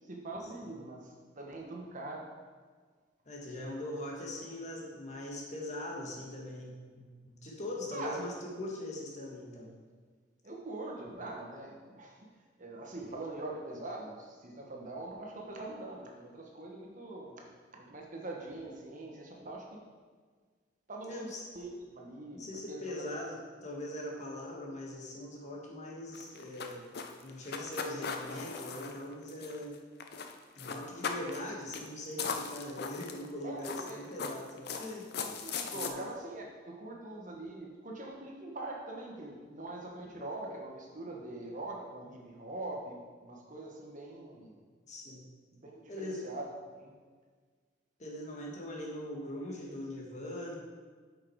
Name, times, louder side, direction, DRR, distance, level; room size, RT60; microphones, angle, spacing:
voice 1, 0.1-2.3 7.9-8.2 10.4-12.2 12.6-17.4 17.7-19.8 20.9-21.3 21.5-22.4 22.7-23.1 33.4-34.1 35.2-44.6 45.5-46.5 46.8-46.9, right 2 dB, 45° right, -1 dB, 1.3 m, -43 dB
voice 2, 3.2-9.7 21.1-21.4 22.3-26.9 27.2-29.8 30.5-35.1 35.7-36.0 40.2-40.3 44.9-45.3 45.9-46.2 48.0-50.6, left 1 dB, 40° left, -2 dB, 1.6 m, -41 dB
sound 1, 26.1-29.7 30.0-30.3 30.6-31.4 31.7-31.9 32.2-33.3 33.6-35.9, left 5 dB, 55° left, 0.7 m, -38 dB
8.5 x 6.4 x 4.7 m, 1.5 s
head